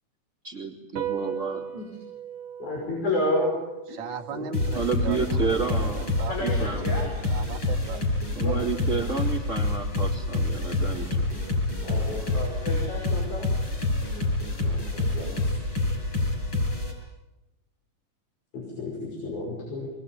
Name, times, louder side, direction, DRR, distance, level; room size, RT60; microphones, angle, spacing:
voice 1, 0.4-1.7 4.7-6.1 6.4-7.1 8.4-11.3, right 5 dB, 25° right, 0 dB, 2.8 m, -30 dB
sound 1, 1.0-7.7, right 9 dB, 75° right, 2.4 m, -39 dB
voice 2, 2.6-3.6 3.9-4.0 4.3-4.5 6.3-7.1 8.4-8.6 11.8-13.8 14.6-15.5 18.5-19.9, left 1 dB, 70° left, -3 dB, 7.2 m, -31 dB
voice 3, 3.9-8.2, right 6 dB, 45° right, 3 dB, 1.9 m, -38 dB
sound 2, 4.5-16.9, left 2 dB, 40° left, 7.9 m, -27 dB
25.5 x 21.5 x 9.6 m, 1.0 s
omnidirectional pair, 3.5 m